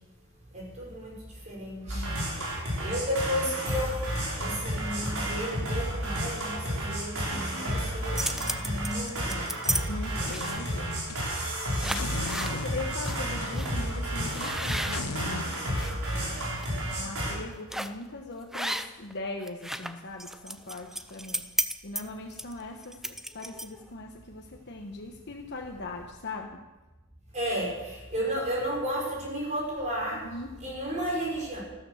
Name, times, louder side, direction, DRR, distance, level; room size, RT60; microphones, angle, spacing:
voice 1, 0.8-1.1 1.5-2.0 2.8-3.9 4.4-8.2 8.6-9.5 27.3-27.7 28.1-30.2 30.6-31.6, equal, 35° right, -3 dB, 5.8 m, -32 dB
voice 2, 1.9-2.7 9.9-11.0 11.8-15.6 16.1-16.6 17.0-21.4 21.8-26.6 30.1-30.6, left 2 dB, 55° left, 2 dB, 1.2 m, -40 dB
sound 1, 1.9-17.3, equal, 75° right, 5.7 m, -31 dB
sound 2, 7.9-9.8 10.3-10.7 11.3-11.5 11.8-12.6 13.0-13.2 13.5-13.7 14.3-15.9 16.4-16.7 17.7-18.0 18.5-19.1 19.4-23.9, right 1 dB, ahead, 0.6 m, -34 dB
sound 3, 10.1-11.5 11.9-15.5, left 4 dB, 90° left, 0.8 m, -39 dB
14.5 x 13.0 x 6.5 m, 1.1 s
head